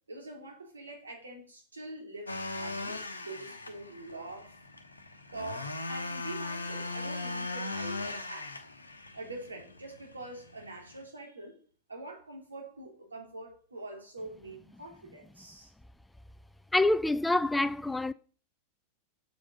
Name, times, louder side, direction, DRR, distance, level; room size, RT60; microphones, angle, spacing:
voice 1, 0.1-4.6 5.3-8.6 9.1-11.6 11.9-15.7, right 2 dB, 75° right, 2.5 m, -44 dB
sound 1, 2.3-11.0, left 2 dB, 80° left, 0.9 m, -39 dB
voice 2, 16.7-18.1, left 2 dB, 5° left, 0.3 m, -26 dB
7.4 x 7.0 x 5.1 m
figure-of-eight pair, 90°, 0 cm